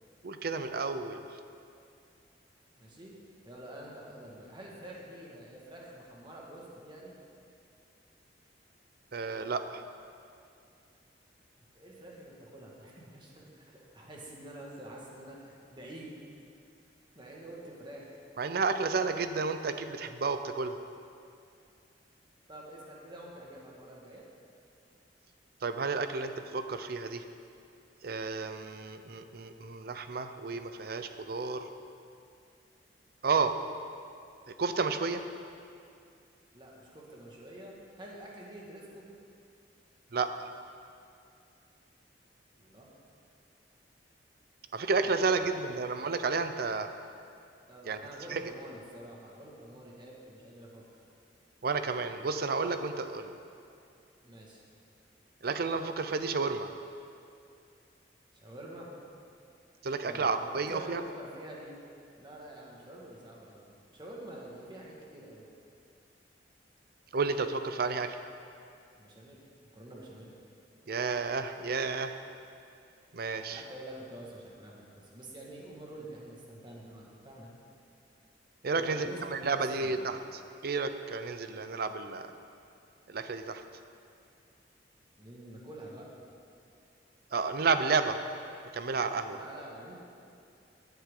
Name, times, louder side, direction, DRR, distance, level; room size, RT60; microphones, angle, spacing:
voice 1, 0.2-1.2 9.1-9.8 18.4-20.8 25.6-27.2 28.0-31.7 33.2-33.6 34.6-35.3 40.1-40.5 44.7-46.9 47.8-48.0 48.3-48.4 51.6-53.4 55.4-56.7 59.8-61.0 67.1-68.2 70.9-72.2 73.1-73.6 78.6-82.3 83.1-83.6 87.3-88.2 88.7-89.4, right 4 dB, 60° right, 9 dB, 0.6 m, -31 dB
voice 2, 2.8-3.1 3.4-7.1 11.6-16.1 17.2-18.1 22.5-24.3 36.5-39.0 42.6-42.9 45.1-45.8 47.7-50.8 54.2-54.6 58.3-58.9 60.0-61.8 62.2-65.4 69.0-69.4 69.7-70.3 73.5-77.5 78.7-80.0 85.2-86.1 89.3-89.9, right 1 dB, 25° right, -3 dB, 1.8 m, -47 dB
15.0 x 9.1 x 3.8 m, 2.4 s
head